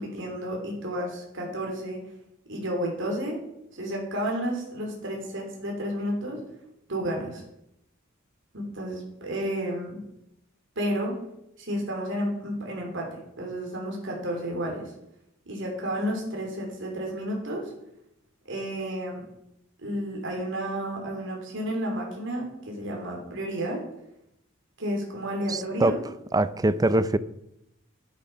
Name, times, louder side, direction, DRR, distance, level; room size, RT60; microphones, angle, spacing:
voice 1, 0.0-2.0 2.5-3.4 3.7-6.4 6.9-7.4 8.5-10.0 10.7-11.2 11.6-14.9 15.4-17.7 18.5-19.3 19.8-23.8 24.8-26.0, equal, 65° right, 3.3 m, -31 dB
voice 2, 25.5-26.0 26.3-27.2, right 2 dB, 20° right, 0.5 m, -23 dB
10.5 x 10.5 x 5.6 m
head